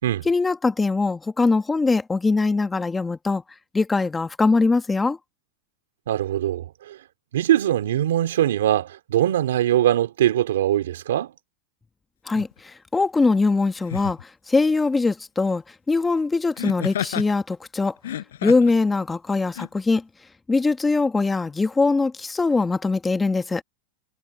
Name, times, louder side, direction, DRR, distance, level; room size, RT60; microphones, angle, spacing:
voice 1, 0.2-3.4 3.7-5.2 12.3-14.2 14.5-17.9 18.4-20.0 20.5-23.6, left 3 dB, 10° left, 1.2 m, -22 dB
voice 2, 6.1-7.0 7.3-11.3, right 12 dB, 90° right, 3.3 m, -22 dB
Laughter, 12.4-12.5 13.8-14.2 16.6-17.3 18.0-18.8 19.5-19.7, left 11 dB, 90° left, 5.3 m, -30 dB
supercardioid pair, 140°, 0 cm